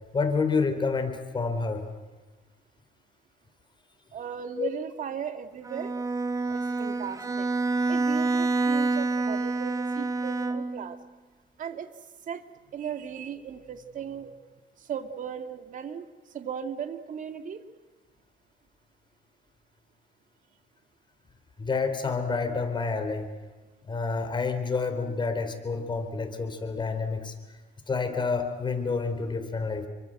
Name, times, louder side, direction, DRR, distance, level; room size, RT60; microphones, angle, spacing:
voice 1, 0.1-1.9 4.6-4.7 21.6-23.3 23.9-27.3 27.9-29.9, left 4 dB, 25° left, 6 dB, 4.2 m, -28 dB
voice 2, 4.1-5.9 6.5-7.5 7.9-11.0 11.6-11.9 12.3-12.4 12.7-14.3 14.8-16.1 16.3-17.6, right 8 dB, 50° right, 8 dB, 2.2 m, -37 dB
Bowed string instrument, 5.6-10.9, right 3 dB, 20° right, 1.9 m, -27 dB
29.0 x 24.0 x 7.8 m, 1.2 s
cardioid pair, 110°, 17 cm